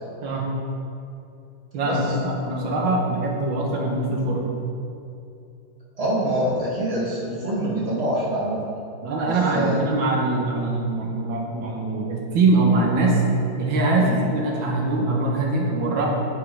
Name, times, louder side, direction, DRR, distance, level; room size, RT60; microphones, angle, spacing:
voice 1, 1.7-4.4 9.0-13.2 13.6-14.1 14.3-16.1, right 2 dB, 85° right, -2 dB, 2.0 m, -23 dB
voice 2, 6.0-8.6 9.2-9.8 14.0-14.2, right 1 dB, 20° right, -6 dB, 1.9 m, -25 dB
10.0 x 5.7 x 4.7 m, 2.7 s
omnidirectional pair, 2.1 m